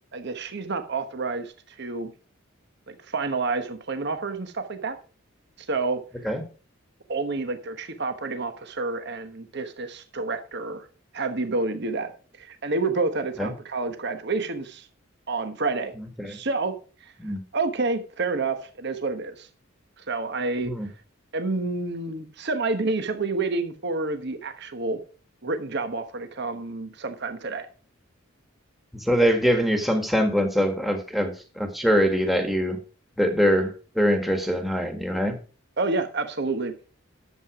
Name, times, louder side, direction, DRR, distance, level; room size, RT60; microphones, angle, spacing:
voice 1, 0.1-2.1 2.9-5.0 5.6-6.0 7.1-10.9 11.1-12.1 12.4-14.9 15.3-15.9 16.3-16.7 17.0-17.1 17.5-19.5 20.0-20.7 21.3-25.0 25.4-27.7 35.8-36.7, right 3 dB, 55° right, 8 dB, 1.2 m, -29 dB
voice 2, 28.9-32.8 33.2-35.3, equal, ahead, 5 dB, 1.6 m, -23 dB
11.0 x 7.7 x 4.9 m, 0.38 s
head